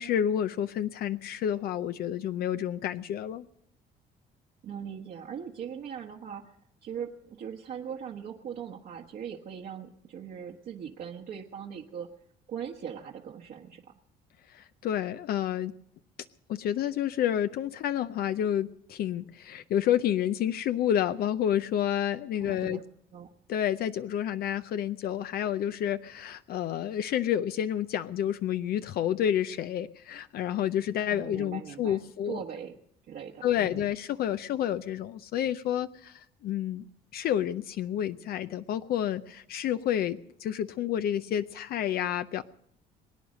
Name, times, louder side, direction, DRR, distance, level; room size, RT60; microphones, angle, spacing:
voice 1, 0.0-3.4 14.5-15.7 16.5-22.8 23.5-32.4 33.4-36.8 37.1-42.4, left 10 dB, 65° left, 11 dB, 0.6 m, -29 dB
voice 2, 4.6-12.1 12.5-13.8 22.4-22.8 23.1-23.3 31.1-32.7 33.0-33.9, right 8 dB, 60° right, -1 dB, 1.3 m, -40 dB
22.5 x 9.4 x 6.3 m, 0.73 s
cardioid pair, 110°, 17 cm